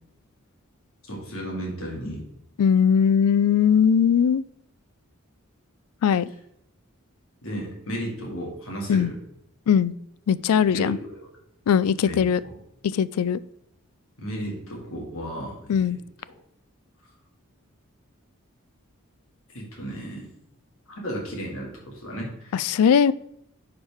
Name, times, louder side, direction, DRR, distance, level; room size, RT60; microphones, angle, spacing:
voice 1, 1.1-2.2 7.4-9.2 10.7-11.3 12.0-12.5 14.2-15.9 19.5-20.2 20.9-22.6, equal, 65° left, -1 dB, 2.3 m, -34 dB
voice 2, 2.6-4.4 6.0-6.3 8.9-9.1 9.7-9.9 10.3-11.0 11.7-12.4 12.9-13.4 15.7-16.0 22.5-23.1, left 7 dB, 85° left, 18 dB, 0.3 m, -20 dB
9.6 x 4.9 x 3.5 m, 0.73 s
head